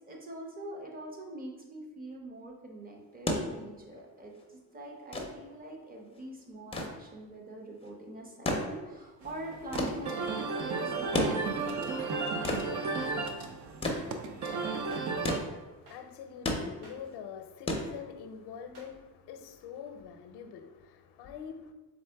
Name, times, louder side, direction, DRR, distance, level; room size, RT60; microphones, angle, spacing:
voice 1, 0.1-12.2, right 1 dB, 20° right, 0 dB, 0.8 m, -44 dB
sound 1, 3.0-18.5 19.8-19.9, left 1 dB, 15° left, 0.5 m, -36 dB
sound 2, 9.2-15.4, right 4 dB, 45° right, 0.5 m, -34 dB
sound 3, 12.0-12.1 13.0-13.1 13.9-14.0 14.9-15.0 15.9-16.0 16.8-17.0 17.8-17.9 18.7-18.9, right 2 dB, 80° right, 1.1 m, -53 dB
voice 2, 14.2-21.7, left 7 dB, 85° left, 7 dB, 0.6 m, -46 dB
4.1 x 3.5 x 3.4 m, 1.2 s
cardioid pair, 135°, 39 cm